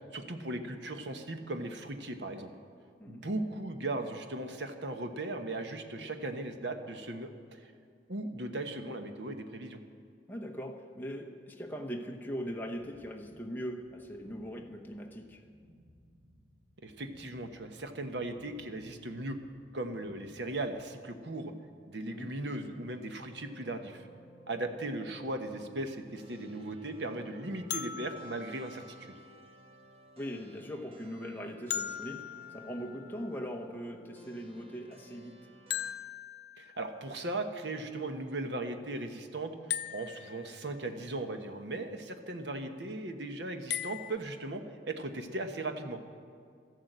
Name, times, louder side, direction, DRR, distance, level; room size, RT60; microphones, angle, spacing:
voice 1, 0.1-2.5 3.1-7.7 8.1-9.8 16.8-19.4 19.7-21.5 21.9-24.1 24.5-29.1 36.6-39.5 39.9-46.1, right 2 dB, 70° right, 1.2 m, -38 dB
voice 2, 10.3-15.4 22.1-22.3 30.2-35.5, equal, 10° left, 1.1 m, -40 dB
sound 1, 12.2-20.8, equal, 10° right, 3.3 m, -62 dB
sound 2, 22.9-35.9, right 2 dB, 35° right, 1.3 m, -57 dB
sound 3, 27.7-29.7 31.7-33.5 35.7-37.1 39.7-41.0 43.7-44.2, left 10 dB, 65° left, 0.6 m, -40 dB
13.5 x 11.5 x 8.0 m
head